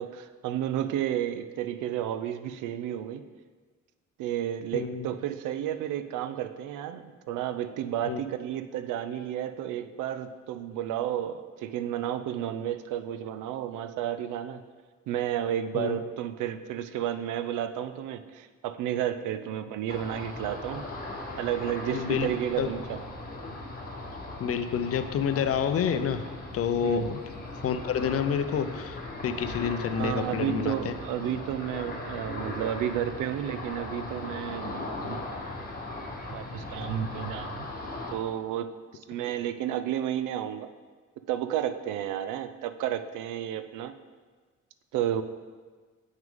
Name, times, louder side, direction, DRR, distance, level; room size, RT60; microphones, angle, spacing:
voice 1, 0.0-3.2 4.2-14.6 15.1-20.9 21.4-23.0 26.8-27.1 29.9-35.2 36.3-37.7 38.1-38.7 39.1-40.7 41.3-43.9 44.9-45.2, right 11 dB, 90° right, 11 dB, 0.5 m, -32 dB
voice 2, 4.7-5.1 8.1-8.2 15.7-16.0 21.9-22.3 22.6-22.7 24.4-26.2 26.5-27.2 27.6-29.0 29.2-30.9 36.4-36.6, left 8 dB, 50° left, 10 dB, 0.5 m, -28 dB
Ocean, 19.9-38.1, left 2 dB, 30° left, 1.1 m, -38 dB
7.4 x 6.0 x 3.6 m, 1.5 s
cardioid pair, 90°, 30 cm